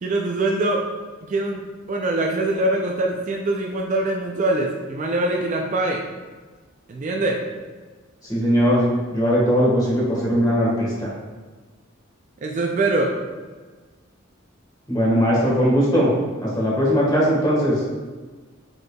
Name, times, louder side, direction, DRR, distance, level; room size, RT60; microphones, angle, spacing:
voice 1, 0.0-0.8 1.3-1.6 1.9-6.0 6.9-7.4 12.4-13.1, right 2 dB, 35° right, 0 dB, 0.4 m, -23 dB
voice 2, 8.3-8.8 9.1-11.1 14.9-16.1 16.4-17.8, equal, 20° left, -6 dB, 1.4 m, -19 dB
5.1 x 4.5 x 2.3 m, 1.4 s
head